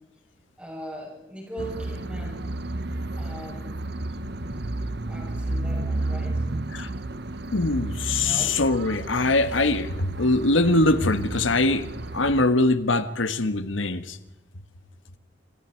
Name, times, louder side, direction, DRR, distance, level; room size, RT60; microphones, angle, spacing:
voice 1, 0.6-2.5 3.2-3.7 5.1-6.4 8.2-8.6, right 1 dB, 5° right, -1 dB, 7.8 m, -39 dB
sound 1, 1.6-12.5, right 2 dB, 55° right, 1.0 m, -32 dB
voice 2, 7.5-11.9 12.1-14.2, left 2 dB, 90° left, 11 dB, 1.4 m, -22 dB
28.0 x 26.0 x 4.6 m, 0.95 s
head